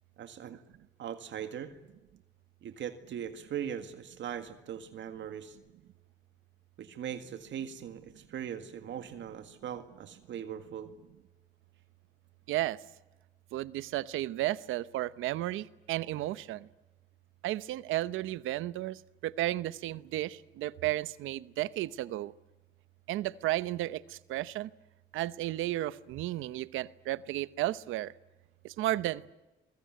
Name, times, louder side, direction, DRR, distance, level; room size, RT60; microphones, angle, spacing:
voice 1, 0.2-0.6 1.0-1.7 2.6-5.6 6.8-10.9, right 9 dB, 70° right, 8 dB, 2.0 m, -40 dB
voice 2, 12.5-12.8 13.5-16.7 17.4-22.3 23.1-24.7 25.1-28.1 28.6-29.3, right 15 dB, 90° right, 17 dB, 0.9 m, -33 dB
24.5 x 22.0 x 9.3 m, 1.0 s
cardioid pair, 90°, 20 cm